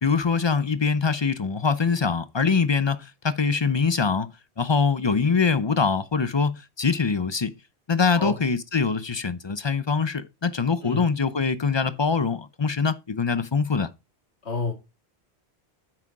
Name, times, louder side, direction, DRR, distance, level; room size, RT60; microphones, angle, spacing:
voice 1, 0.0-4.3 4.6-7.5 7.9-13.9, left 5 dB, 35° left, 0.5 m, -23 dB
voice 2, 14.4-14.7, left 3 dB, 80° left, 2.1 m, -29 dB
9.0 x 6.2 x 4.7 m
omnidirectional pair, 1.1 m